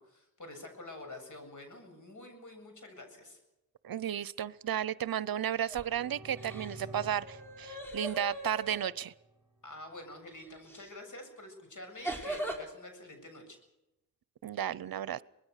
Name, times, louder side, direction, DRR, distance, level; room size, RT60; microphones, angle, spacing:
voice 1, 0.0-3.4 6.7-6.9 9.6-13.6, left 1 dB, 55° left, 5 dB, 7.6 m, -48 dB
voice 2, 3.8-9.1 14.4-15.2, right 10 dB, 70° right, 20 dB, 0.7 m, -33 dB
sound 1, 5.5-5.9 6.3-8.9 10.7-10.9 12.0-12.6, right 1 dB, 5° left, 4.8 m, -40 dB
sound 2, 5.7-9.5, right 2 dB, 10° right, 5.6 m, -50 dB
24.5 x 21.0 x 6.6 m, 0.93 s
cardioid pair, 75°, 37 cm